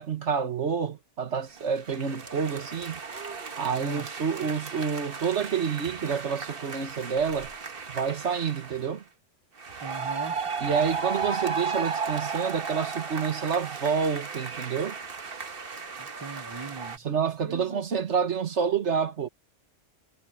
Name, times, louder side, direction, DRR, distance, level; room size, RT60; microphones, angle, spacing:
voice 1, 0.0-3.0 3.6-7.5 7.9-9.0 10.6-15.0 17.0-19.3, right 6 dB, 70° right, 1.8 m, -28 dB
sound 1, 1.6-8.9 9.6-17.0, right 5 dB, 50° right, 1.5 m, -35 dB
voice 2, 3.8-4.1 9.8-10.4 16.0-17.0 17.4-17.8, right 4 dB, 30° right, 0.4 m, -39 dB
omnidirectional pair, 1.3 m